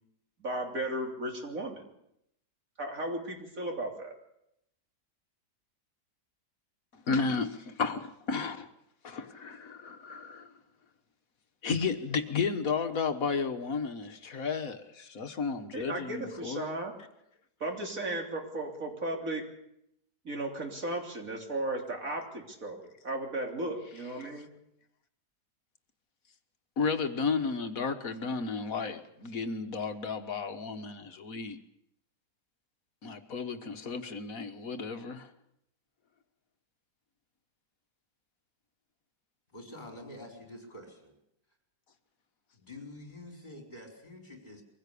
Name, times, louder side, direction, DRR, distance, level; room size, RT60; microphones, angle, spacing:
voice 1, 0.4-1.8 2.8-4.2 15.7-16.9 17.6-19.4 20.2-24.5, right 1 dB, 50° right, 2 dB, 3.8 m, -35 dB
voice 2, 6.9-8.7 9.0-10.5 11.6-16.8 24.2-24.3 26.8-31.6 33.0-35.3, left 5 dB, 55° left, 8 dB, 1.7 m, -33 dB
voice 3, 39.5-41.1 42.5-44.6, left 1 dB, 25° left, 2 dB, 4.9 m, -47 dB
23.5 x 16.0 x 8.5 m, 0.79 s
omnidirectional pair, 1.8 m